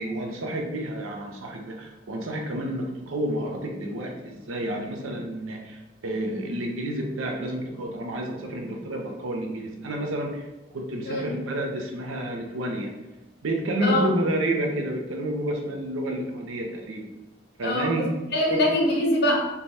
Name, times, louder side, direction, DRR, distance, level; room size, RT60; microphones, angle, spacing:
voice 1, 0.0-10.5 10.7-12.9 13.4-17.0 17.6-18.1 18.5-18.6, right 1 dB, 90° right, 2 dB, 0.5 m, -30 dB
voice 2, 17.6-19.5, left 1 dB, 55° left, -1 dB, 0.6 m, -24 dB
3.2 x 2.2 x 2.6 m, 1.0 s
head